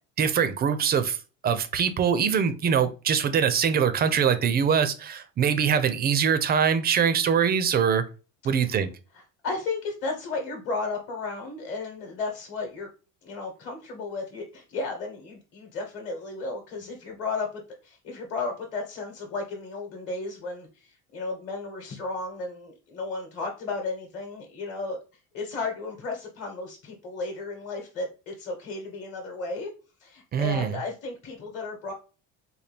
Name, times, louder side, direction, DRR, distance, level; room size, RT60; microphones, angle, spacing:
voice 1, 0.2-1.2 1.4-8.0 8.4-8.9 30.3-30.8, right 7 dB, 30° right, 0.5 m, -23 dB
voice 2, 9.1-12.9 13.2-25.0 25.3-29.7 30.0-31.9, left 3 dB, 40° left, 1.1 m, -34 dB
4.3 x 2.2 x 3.3 m
cardioid pair, 140°, 31 cm